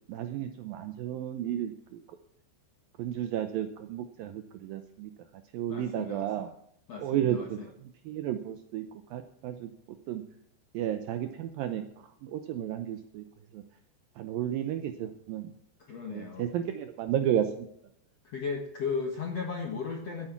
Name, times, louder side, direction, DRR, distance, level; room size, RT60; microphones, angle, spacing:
voice 1, 0.1-2.0 3.0-5.1 5.5-6.5 7.0-8.9 9.1-9.7 10.1-10.2 10.7-11.8 12.2-13.2 13.5-13.6 14.2-15.5 16.1-17.5, right 10 dB, 85° right, 9 dB, 2.0 m, -32 dB
voice 2, 5.7-6.3 6.9-7.7 15.9-16.5 18.2-20.3, left 5 dB, 60° left, 2 dB, 1.7 m, -35 dB
14.5 x 8.9 x 5.9 m, 0.71 s
omnidirectional pair, 5.0 m